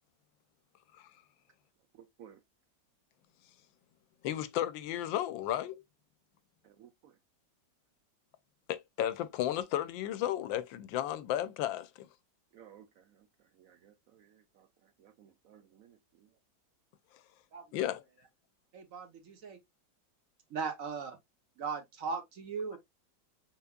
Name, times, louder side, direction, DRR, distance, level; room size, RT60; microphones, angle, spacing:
voice 1, 1.9-2.4 6.6-7.2 12.5-16.4, right 9 dB, 80° right, 0.7 m, -59 dB
voice 2, 4.2-5.8 8.7-12.1 17.7-18.0, left 12 dB, 90° left, 1.4 m, -33 dB
voice 3, 18.7-19.6 20.5-21.2 21.6-22.8, right 5 dB, 50° right, 1.2 m, -38 dB
5.6 x 3.9 x 2.3 m
omnidirectional pair, 2.0 m